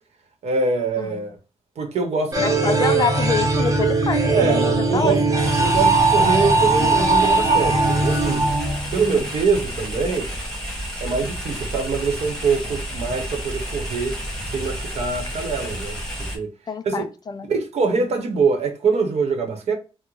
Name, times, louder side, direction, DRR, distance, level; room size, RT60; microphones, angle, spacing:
voice 1, 0.4-1.4 1.8-2.9 4.3-4.6 4.9-5.2 5.6-8.5 8.9-10.5 11.0-14.1 14.5-16.5 16.8-17.1 17.5-19.7, right 4 dB, 85° right, 0.9 m, -24 dB
voice 2, 1.0-1.3 2.4-5.1 16.7-17.5, left 5 dB, 40° left, 0.4 m, -26 dB
sound 1, 2.3-9.3, right 3 dB, 30° right, 0.7 m, -19 dB
sound 2, 5.4-16.4, equal, 5° left, 1.4 m, -31 dB
3.8 x 2.0 x 2.9 m
wide cardioid pair, 125°, 11 cm